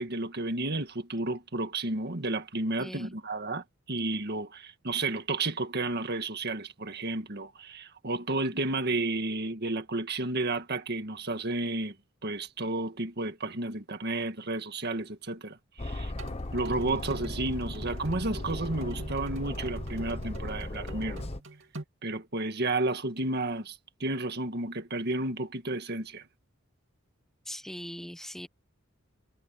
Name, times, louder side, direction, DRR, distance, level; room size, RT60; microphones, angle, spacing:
voice 1, 0.0-12.0 12.2-16.1 16.5-21.3 22.0-26.2, right 2 dB, 55° right, 1.8 m, -32 dB
voice 2, 2.8-3.1 27.5-28.5, equal, ahead, 0.9 m, -40 dB
Aircraft, 15.8-21.4, left 1 dB, 30° left, 1.0 m, -37 dB
sound 1, 16.2-21.8, right 2 dB, 70° right, 2.8 m, -44 dB
head